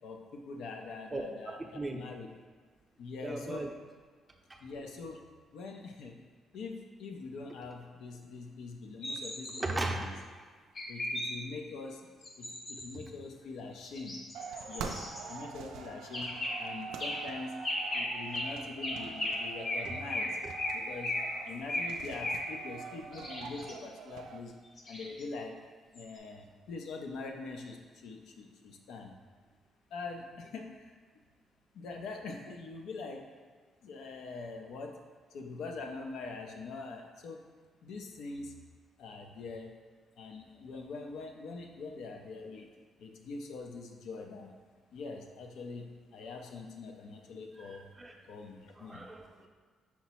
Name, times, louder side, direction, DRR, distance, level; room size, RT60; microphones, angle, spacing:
voice 1, 0.0-2.3 3.0-3.6 4.6-5.2 5.5-6.2 6.5-10.2 10.9-12.0 12.4-14.2 14.7-15.0 15.3-17.6 17.9-20.4 20.7-21.2 21.5-24.5 24.9-25.6 25.9-29.1 29.9-30.9 31.7-33.2 33.8-34.9 35.3-37.4 37.8-38.5 39.0-39.7 40.2-42.7 43.0-44.5 44.9-47.9 48.3-49.1, left 3 dB, 80° left, 3 dB, 0.5 m, -43 dB
voice 2, 1.1-2.0 3.2-3.7 4.5-4.6 9.5-10.1 12.9-13.0 19.9-20.0 20.4-20.5 47.6-48.2 48.7-49.5, right 2 dB, 20° right, 3 dB, 0.5 m, -38 dB
sound 1, 9.0-9.6 10.8-11.3 12.2-12.8 13.8-15.3 16.1-16.6 17.0-17.2 17.6-18.1 18.3-18.5 18.8-19.4 19.6-19.8 20.1-20.3 20.6-20.8 21.0-21.2 21.7-21.9 22.2-22.4 23.1-23.7 24.8-25.2 25.9-26.0, left 1 dB, 45° left, 0.8 m, -35 dB
sound 2, 14.3-24.4, right 6 dB, 85° right, 0.3 m, -44 dB
5.7 x 2.0 x 4.2 m, 1.5 s
cardioid pair, 90°, 0 cm